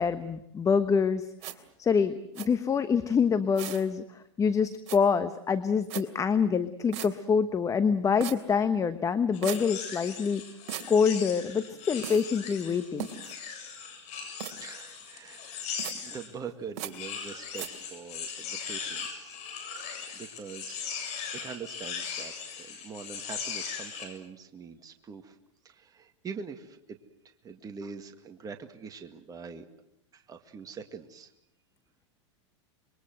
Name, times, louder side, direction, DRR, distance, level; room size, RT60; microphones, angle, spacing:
voice 1, 0.0-1.5 1.8-10.4 10.9-13.1, left 6 dB, 20° left, 11 dB, 1.2 m, -26 dB
sound 1, 1.4-1.5 2.3-2.5 3.5-3.8 4.9-5.0 5.9-6.0 6.9-7.1 8.2-8.4 9.4-9.6 10.7-10.9 12.0-12.2 13.0-13.3 14.4-14.5 15.8-15.9 16.8-16.9 17.6-17.7, right 12 dB, 55° right, 3.2 m, -36 dB
sound 2, 9.3-16.3 16.8-24.1, left 6 dB, 45° left, 7.4 m, -39 dB
voice 2, 14.5-15.6 15.9-19.5 19.8-20.9 21.3-25.4 25.6-27.0 27.2-29.7 30.1-31.3, right 6 dB, 25° right, 6 dB, 2.0 m, -44 dB
27.0 x 22.5 x 7.8 m, 0.77 s
hypercardioid pair, 115°, 15 cm